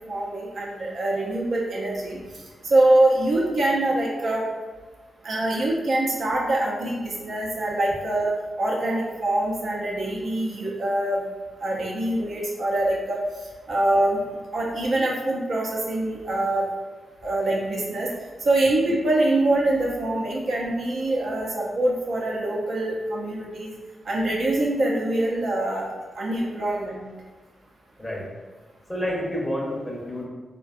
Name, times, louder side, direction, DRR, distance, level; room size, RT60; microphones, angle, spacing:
voice 1, 0.1-2.2 2.6-4.4 5.2-11.2 11.6-13.2 13.7-14.2 14.5-16.7 17.2-18.1 18.4-23.7 24.0-25.9 26.1-27.0, right 1 dB, 65° right, -4 dB, 0.5 m, -24 dB
voice 2, 28.9-30.2, equal, 20° left, -3 dB, 0.7 m, -29 dB
2.5 x 2.2 x 2.4 m, 1.3 s
supercardioid pair, 40°, 0 cm